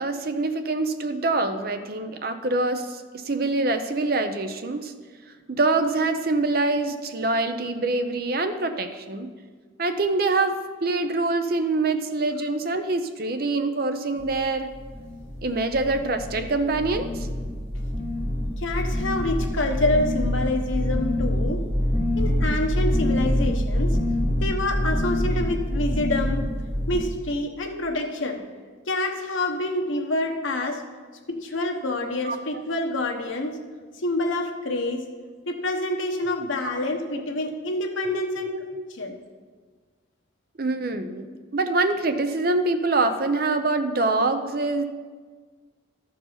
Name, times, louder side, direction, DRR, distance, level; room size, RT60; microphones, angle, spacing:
voice 1, 0.0-4.9 5.5-9.3 9.8-14.7 15.4-17.3 32.2-32.4 38.0-38.8 40.6-41.3 41.5-44.8, right 3 dB, 50° right, 8 dB, 0.6 m, -25 dB
sound 1, 14.2-14.4 14.7-15.4 15.7-16.4 16.7-27.0, left 1 dB, 25° right, 2.4 m, -25 dB
voice 2, 18.6-21.6 22.2-24.0 24.4-26.4 26.9-28.4 28.9-30.8 31.3-33.6 34.0-35.0 35.5-38.5 38.9-39.2, left 2 dB, 80° left, 3 dB, 1.1 m, -27 dB
13.0 x 4.7 x 5.7 m, 1.5 s
head